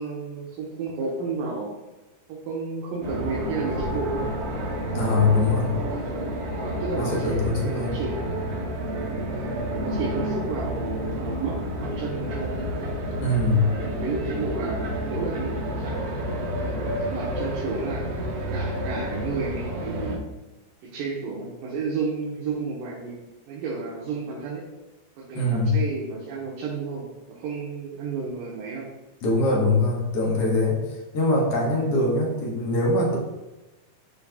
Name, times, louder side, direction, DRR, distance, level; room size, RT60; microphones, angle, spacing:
voice 1, 0.0-1.7 2.3-4.3 5.9-8.2 9.3-12.5 13.6-16.0 16.6-18.0 18.5-20.3 20.8-23.2 23.5-24.6 25.2-28.9, right 4 dB, 85° right, -5 dB, 2.7 m, -32 dB
sound 1, 3.0-20.2, equal, 60° right, 1.8 m, -30 dB
voice 2, 4.9-5.8 7.0-8.0 13.2-13.7 25.3-25.8 29.2-30.8 31.1-33.2, left 2 dB, 60° left, -2 dB, 1.8 m, -22 dB
12.0 x 4.1 x 2.3 m, 1.1 s
omnidirectional pair, 3.8 m